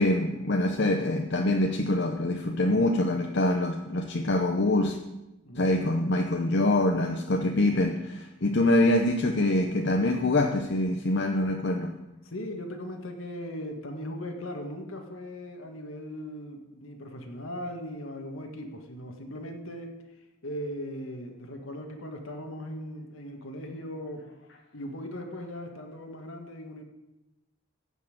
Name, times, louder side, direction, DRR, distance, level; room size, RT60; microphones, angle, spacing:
voice 1, 0.0-5.0 5.6-11.9, left 1 dB, 55° left, 4 dB, 0.8 m, -25 dB
voice 2, 5.4-5.8 8.4-8.6 12.2-20.0 20.4-24.3 24.7-26.8, equal, 80° left, 3 dB, 1.8 m, -38 dB
15.0 x 5.7 x 8.6 m, 1.0 s
head